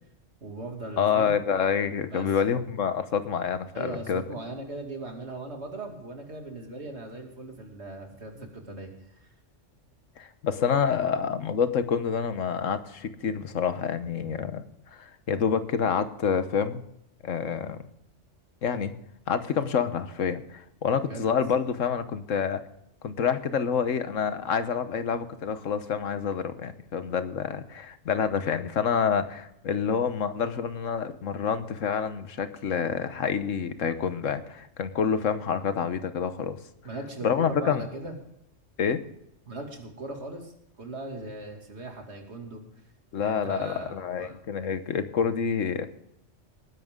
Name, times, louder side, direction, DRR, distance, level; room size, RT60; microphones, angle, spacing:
voice 1, 0.4-1.3 2.1-2.3 3.7-8.9 9.2-9.3 21.1-21.2 36.8-38.1 39.5-40.5 40.8-42.6 43.2-44.4, right 2 dB, 60° right, 2 dB, 2.8 m, -39 dB
voice 2, 1.0-4.2 10.2-14.6 14.9-16.8 17.2-17.8 18.6-18.9 19.3-22.6 23.0-36.6 37.2-37.8 38.8-39.0 43.1-45.8, left 7 dB, 90° left, 11 dB, 1.4 m, -27 dB
19.0 x 11.0 x 3.7 m, 0.79 s
omnidirectional pair, 1.3 m